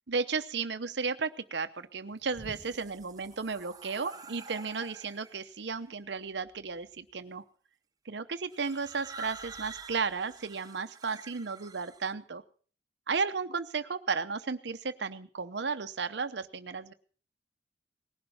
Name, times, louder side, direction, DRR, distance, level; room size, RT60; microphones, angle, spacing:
voice 1, 0.1-7.4 8.1-12.4 13.1-16.9, right 5 dB, 70° right, 9 dB, 0.8 m, -34 dB
sound 1, 2.1-5.6 6.5-6.9 8.5-12.1, right 3 dB, 20° right, 0.6 m, -48 dB
19.0 x 11.5 x 5.5 m, 0.43 s
head